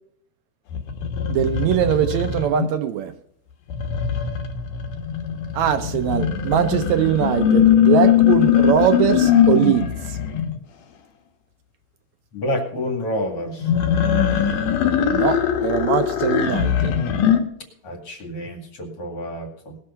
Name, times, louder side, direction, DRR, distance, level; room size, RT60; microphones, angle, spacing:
sound 1, 0.7-2.6 3.7-10.5 13.6-17.4, left 9 dB, 85° left, 3.0 m, -20 dB
voice 1, 1.3-3.1 5.5-10.2 15.1-17.0, right 9 dB, 75° right, 1.9 m, -21 dB
voice 2, 12.3-13.7 17.8-19.8, equal, 50° left, 2.9 m, -28 dB
19.5 x 6.7 x 5.7 m
omnidirectional pair, 3.5 m